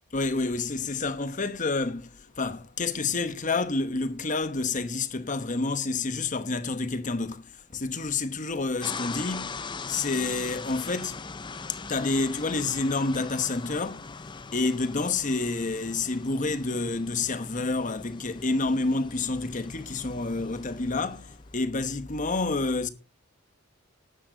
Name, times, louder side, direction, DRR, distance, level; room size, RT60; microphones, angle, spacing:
voice 1, 0.1-11.2 11.7-14.1 14.5-22.9, left 3 dB, 40° left, 1.1 m, -29 dB
sound 1, 8.8-21.6, left 4 dB, 20° left, 0.5 m, -41 dB
13.0 x 10.5 x 3.9 m
head